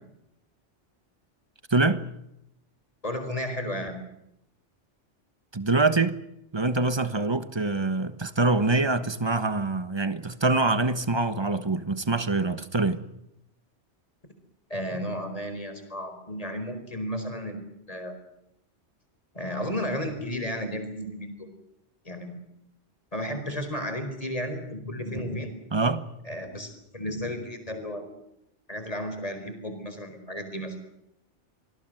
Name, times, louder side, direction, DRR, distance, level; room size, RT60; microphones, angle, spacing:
voice 1, 1.7-2.0 5.5-6.2 6.5-13.0 25.7-26.0, right 3 dB, 25° right, 1.3 m, -25 dB
voice 2, 3.0-4.0 14.7-18.1 19.3-21.5 22.0-22.4 23.1-25.5 26.2-28.0 28.7-30.8, equal, 30° left, 4.7 m, -33 dB
26.0 x 20.0 x 7.8 m
omnidirectional pair, 1.2 m